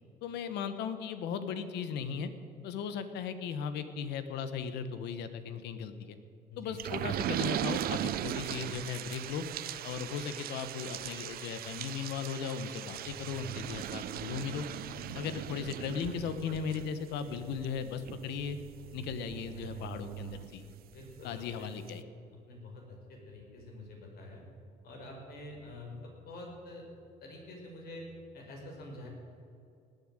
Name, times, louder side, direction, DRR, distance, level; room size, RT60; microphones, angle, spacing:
voice 1, 0.2-2.3 2.6-6.2 6.6-9.4 9.8-14.7 15.1-18.6 18.9-20.6 21.2-22.0, left 6 dB, 85° left, 11 dB, 1.3 m, -37 dB
sound 1, 6.8-21.1 21.5-21.6 21.9-22.0, right 12 dB, 65° right, 0.7 m, -39 dB
voice 2, 20.9-21.7 22.5-24.4 24.8-26.9 27.2-28.1 28.3-29.1, left 2 dB, 65° left, 0 dB, 5.2 m, -47 dB
18.5 x 8.1 x 8.9 m, 2.5 s
cardioid pair, 110°, 17 cm